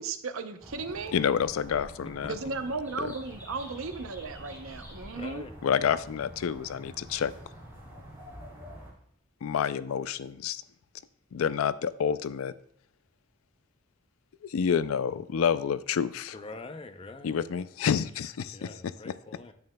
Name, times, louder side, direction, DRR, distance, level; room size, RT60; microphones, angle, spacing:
voice 1, 0.0-1.1 2.3-5.5, right 4 dB, 85° right, 9 dB, 0.7 m, -35 dB
sound 1, 0.6-8.9, equal, 10° right, 3.3 m, -47 dB
voice 2, 1.1-2.3 3.0-3.1 5.6-7.3 9.4-10.6 11.3-12.5 14.4-16.4 17.2-19.1, left 7 dB, 90° left, 16 dB, 0.4 m, -28 dB
voice 3, 5.1-5.6 16.3-17.5 18.5-19.5, left 3 dB, 25° left, 7 dB, 0.5 m, -44 dB
9.5 x 8.7 x 2.2 m, 0.68 s
head